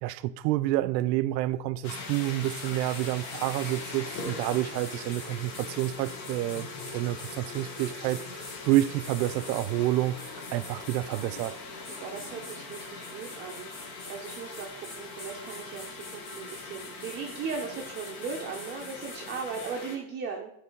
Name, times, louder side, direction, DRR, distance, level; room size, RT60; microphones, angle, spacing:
voice 1, 0.0-8.2 8.6-11.6, right 15 dB, 80° right, 0.6 m, -29 dB
sound 1, 1.8-20.0, left 3 dB, 50° left, 1.5 m, -41 dB
sound 2, 2.0-9.7 10.2-11.5 11.8-19.7, left 2 dB, 25° left, 1.9 m, -47 dB
voice 2, 11.9-20.6, right 5 dB, 20° right, 0.5 m, -38 dB
9.7 x 3.3 x 4.4 m
supercardioid pair, 155°, 50 cm